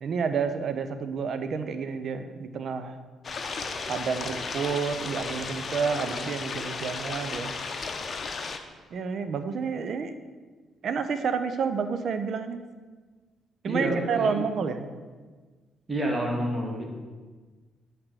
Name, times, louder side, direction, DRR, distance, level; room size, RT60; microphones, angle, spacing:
voice 1, 0.0-3.0 3.9-7.5 8.9-10.1 10.8-12.6 13.6-14.9, right 6 dB, 55° right, 9 dB, 0.5 m, -29 dB
sound 1, 3.2-8.6, left 4 dB, 45° left, 0.7 m, -34 dB
voice 2, 13.7-14.4 15.9-16.8, right 1 dB, 25° right, -1 dB, 1.8 m, -28 dB
8.5 x 3.4 x 5.9 m, 1.4 s
hypercardioid pair, 45°, 0 cm